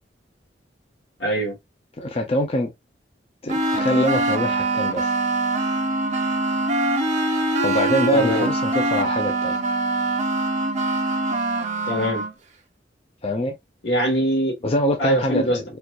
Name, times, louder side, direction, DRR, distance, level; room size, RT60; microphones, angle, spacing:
voice 1, 1.2-1.6 8.1-8.5 11.9-12.2 13.8-14.6 15.0-15.6, equal, 80° left, 1.6 m, -22 dB
voice 2, 2.0-2.7 3.4-5.1 7.6-9.6 13.2-13.5 14.6-15.6, equal, 35° left, 0.6 m, -24 dB
sound 1, 3.5-12.3, right 2 dB, 40° right, 0.7 m, -23 dB
4.4 x 2.5 x 2.4 m
head